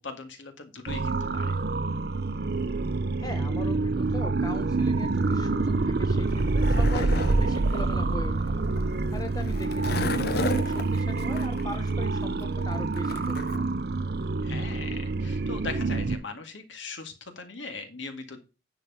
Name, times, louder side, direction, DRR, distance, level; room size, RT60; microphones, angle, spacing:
voice 1, 0.0-1.6 14.4-18.4, left 4 dB, 80° left, 6 dB, 2.0 m, -39 dB
sound 1, 0.9-16.2, right 3 dB, 55° right, 0.6 m, -27 dB
voice 2, 3.2-8.5 9.1-13.7, left 1 dB, 20° left, 5 dB, 1.1 m, -39 dB
Skateboard, 6.1-13.6, left 3 dB, 55° left, 0.8 m, -36 dB
9.9 x 4.7 x 5.6 m, 0.29 s
head